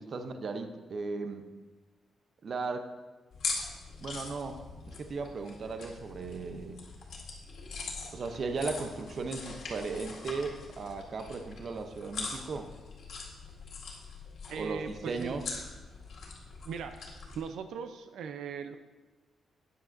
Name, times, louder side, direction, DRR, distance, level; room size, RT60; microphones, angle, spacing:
voice 1, 0.0-1.5 2.4-2.9 4.0-4.6 4.9-6.8 8.1-12.7 14.6-15.4, right 4 dB, 40° right, 7 dB, 0.7 m, -36 dB
sound 1, 3.3-17.4, left 4 dB, 55° left, 2.0 m, -42 dB
voice 2, 14.5-15.4 16.6-17.0 17.4-18.8, right 6 dB, 75° right, 8 dB, 0.5 m, -39 dB
13.0 x 9.7 x 2.6 m, 1.3 s
wide cardioid pair, 170°, 0 cm